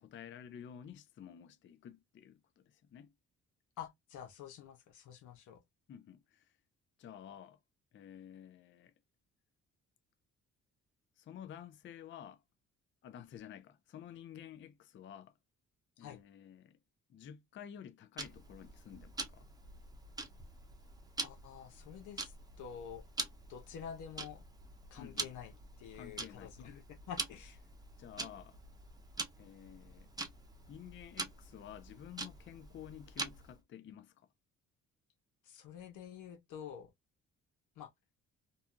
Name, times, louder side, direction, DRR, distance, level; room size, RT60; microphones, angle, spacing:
voice 1, 0.0-3.1 5.9-6.5 7.0-7.6 7.9-8.9 11.2-12.4 13.0-15.3 16.0-16.8 17.1-19.5 25.0-25.3 25.9-26.7 28.0-28.6 29.4-30.1 30.7-34.3, left 9 dB, 40° left, 0.4 m, -51 dB
voice 2, 3.8-5.6 16.0-16.2 21.2-23.0 23.5-24.5 24.9-25.5 25.8-27.6 35.4-36.9 37.8-37.9, left 8 dB, 85° left, 0.9 m, -48 dB
Tick-tock, 18.2-33.6, right 2 dB, 15° right, 0.8 m, -45 dB
2.7 x 2.5 x 2.3 m
cardioid pair, 90°, 30 cm